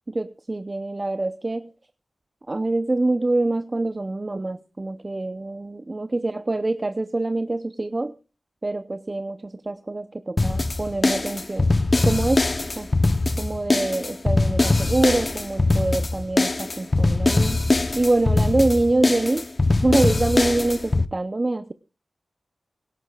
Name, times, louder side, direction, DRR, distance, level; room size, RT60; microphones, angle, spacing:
voice 1, 0.1-1.7 2.5-8.1 8.6-11.7 12.0-12.5 12.8-12.9 13.4-17.6 18.0-19.5 19.8-21.7, right 2 dB, 30° right, 11 dB, 0.7 m, -25 dB
sound 1, 10.4-21.1, left 2 dB, 35° left, 0.8 m, -22 dB
18.0 x 17.5 x 2.4 m, 0.33 s
cardioid pair, 60°, 0 cm